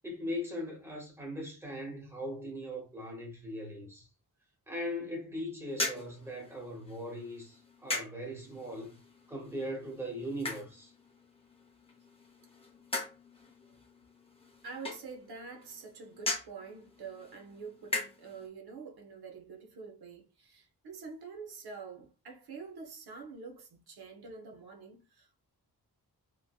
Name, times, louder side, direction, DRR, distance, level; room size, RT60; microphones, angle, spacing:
voice 1, 0.0-4.1 4.7-8.9 9.3-10.9, equal, 5° right, 0.9 m, -39 dB
sound 1, 5.7-18.5, left 2 dB, 15° left, 0.5 m, -41 dB
voice 2, 14.6-25.4, right 5 dB, 85° right, 0.6 m, -46 dB
3.0 x 2.5 x 2.3 m
wide cardioid pair, 175°, 37 cm